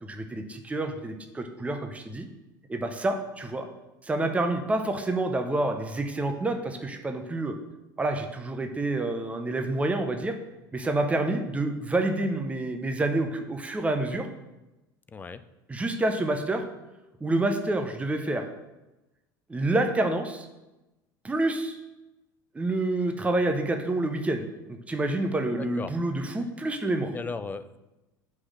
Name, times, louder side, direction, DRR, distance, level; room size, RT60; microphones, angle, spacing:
voice 1, 0.0-2.3 2.7-3.7 4.0-7.6 8.0-10.3 10.7-14.3 15.7-16.6 17.2-18.4 19.5-20.5 21.2-21.8 22.5-27.1, right 2 dB, 10° right, 6 dB, 0.8 m, -28 dB
voice 2, 15.1-15.4 25.6-25.9 27.1-27.8, left 4 dB, 15° left, 12 dB, 0.4 m, -36 dB
5.9 x 4.8 x 6.3 m, 1.0 s
figure-of-eight pair, 70°, 12 cm